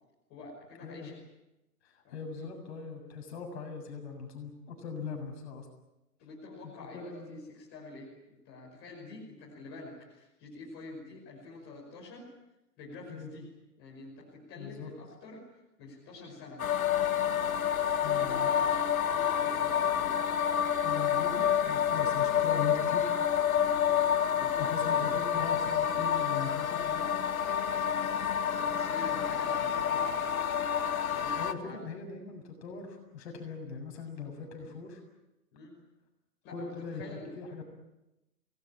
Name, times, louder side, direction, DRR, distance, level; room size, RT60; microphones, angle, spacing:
voice 1, 0.3-1.2 2.0-2.2 6.2-12.3 12.8-13.5 13.8-15.4 15.8-16.6 17.9-20.1 24.3-25.2 28.6-30.4 31.1-31.8 34.6-34.7 35.5-35.8 36.4-37.3, left 3 dB, 20° left, -3 dB, 5.8 m, -47 dB
voice 2, 0.8-1.1 1.8-5.7 6.6-7.4 13.1-13.3 14.6-14.9 18.0-18.5 20.8-23.1 24.6-27.1 31.4-35.0 36.5-37.1 37.4-37.6, left 5 dB, 40° left, 3 dB, 7.4 m, -40 dB
sound 1, 16.6-31.5, left 8 dB, 60° left, 1.9 m, -28 dB
28.5 x 19.5 x 8.8 m, 0.96 s
hypercardioid pair, 155°, 48 cm